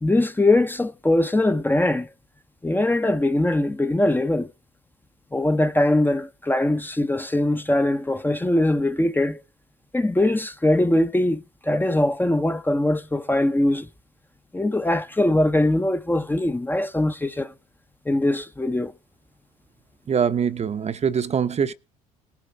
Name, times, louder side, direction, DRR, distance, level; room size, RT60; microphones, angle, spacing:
voice 1, 0.0-2.1 2.6-4.5 5.3-9.4 9.9-13.9 14.5-17.5 18.1-18.9, left 1 dB, 10° left, 0.9 m, -21 dB
voice 2, 20.1-21.7, right 7 dB, 35° right, 0.9 m, -23 dB
19.0 x 7.3 x 4.6 m
hypercardioid pair, 60°, 19 cm